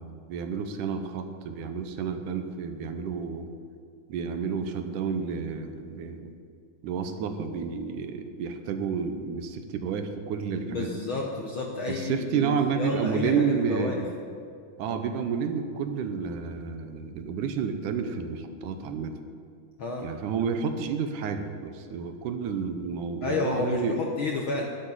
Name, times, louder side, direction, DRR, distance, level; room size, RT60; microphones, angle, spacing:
voice 1, 0.0-3.5 4.1-6.3 6.8-11.0 11.9-14.1 14.8-19.1 20.0-24.0, right 6 dB, 80° right, 7 dB, 2.4 m, -30 dB
voice 2, 10.7-14.0 19.8-20.1 23.2-24.6, left 3 dB, 65° left, 0 dB, 1.3 m, -30 dB
12.0 x 8.4 x 9.1 m, 2.3 s
omnidirectional pair, 3.7 m